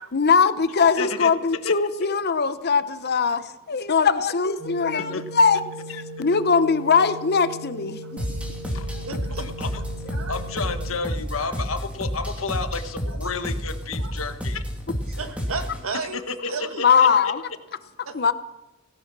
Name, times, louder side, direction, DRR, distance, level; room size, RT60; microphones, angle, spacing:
voice 1, 0.1-5.6 6.2-8.0 16.8-17.4 18.1-18.3, left 5 dB, 50° left, 13 dB, 0.8 m, -20 dB
voice 2, 1.0-1.3 1.6-1.7 5.1-5.2 8.7-8.9 9.4-9.8 10.3-14.6 16.1-16.5 16.8-17.3, left 4 dB, 70° left, 9 dB, 1.3 m, -31 dB
sound 1, 4.6-11.0, right 1 dB, 50° right, 6.5 m, -38 dB
sound 2, 8.2-15.8, equal, 5° right, 2.6 m, -30 dB
voice 3, 8.7-9.5 10.1-10.3 11.0-11.6 13.1-13.2 14.0-14.1 15.2-16.2 16.5-16.9 18.1-18.3, right 4 dB, 85° right, 8 dB, 1.6 m, -35 dB
17.5 x 11.0 x 6.0 m, 1.0 s
head